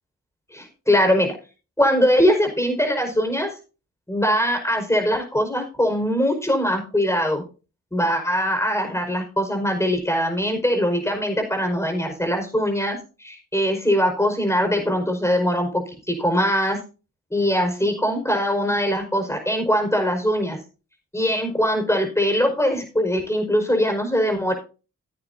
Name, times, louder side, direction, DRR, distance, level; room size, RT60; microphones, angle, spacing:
voice 1, 0.5-1.3 1.8-3.6 4.1-7.4 7.9-16.8 17.3-20.6 21.1-24.5, equal, 5° left, 4 dB, 5.1 m, -22 dB
15.5 x 8.8 x 2.7 m, 0.33 s
supercardioid pair, 50°, 36 cm